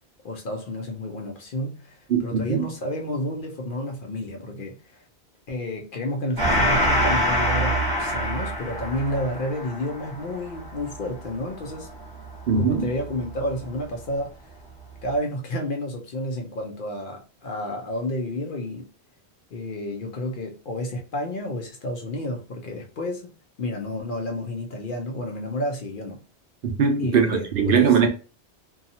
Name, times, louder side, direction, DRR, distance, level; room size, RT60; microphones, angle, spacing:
voice 1, 0.2-5.0 5.5-11.9 12.6-14.3 15.0-18.8 19.5-23.3 23.6-26.2 27.0-28.1, left 1 dB, 55° left, 0.7 m, -31 dB
voice 2, 2.1-2.6 12.5-12.9 26.6-28.1, right 6 dB, 65° right, 0.7 m, -20 dB
Gong, 6.4-13.3, equal, 20° right, 1.0 m, -25 dB
2.7 x 2.3 x 2.7 m
omnidirectional pair, 1.1 m